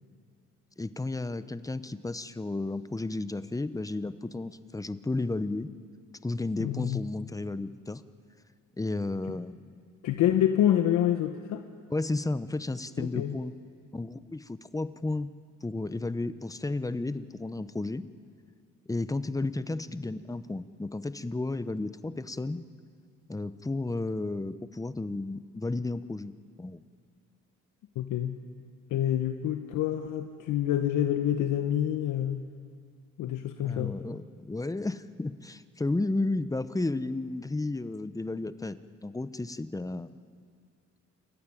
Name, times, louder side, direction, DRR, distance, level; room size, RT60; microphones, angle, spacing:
voice 1, 0.8-5.7 6.2-8.0 8.8-9.7 11.9-13.5 13.9-15.3 15.6-18.0 18.9-22.6 23.3-26.3 26.6-26.8 33.6-40.1, left 2 dB, 10° left, 14 dB, 0.8 m, -33 dB
voice 2, 6.6-7.0 10.0-11.6 13.0-13.4 28.0-28.4 28.9-32.4 33.2-33.9, left 11 dB, 85° left, 7 dB, 1.0 m, -27 dB
27.5 x 14.5 x 10.0 m, 2.2 s
cardioid pair, 90°, 30 cm